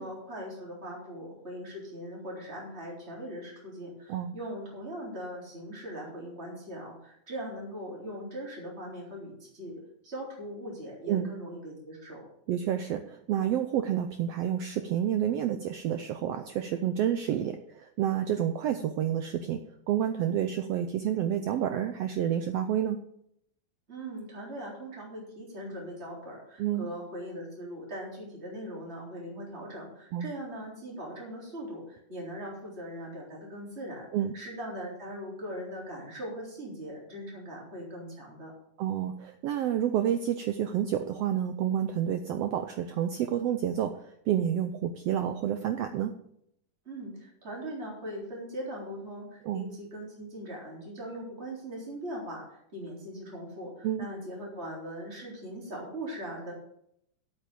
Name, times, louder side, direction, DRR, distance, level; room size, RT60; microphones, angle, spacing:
voice 1, 0.0-12.3 23.9-34.1 34.3-38.5 46.9-56.5, equal, 20° right, -3 dB, 3.6 m, -40 dB
voice 2, 12.5-19.6 19.9-23.0 26.6-26.9 30.1-30.3 34.1-34.3 38.8-46.1 49.4-49.7 53.8-54.1, right 10 dB, 90° right, 8 dB, 1.4 m, -29 dB
8.4 x 7.8 x 6.9 m, 0.72 s
omnidirectional pair, 3.6 m